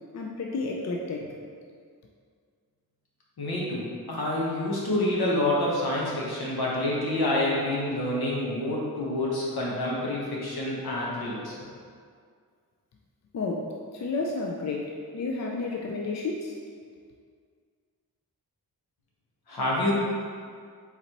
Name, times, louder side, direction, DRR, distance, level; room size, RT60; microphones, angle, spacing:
voice 1, 0.1-1.3 13.3-16.6, left 3 dB, 45° left, 0 dB, 0.5 m, -31 dB
voice 2, 3.4-11.5 19.5-19.9, left 1 dB, 75° left, -5 dB, 1.1 m, -27 dB
4.1 x 4.0 x 2.9 m, 2.1 s
cardioid pair, 55°, 38 cm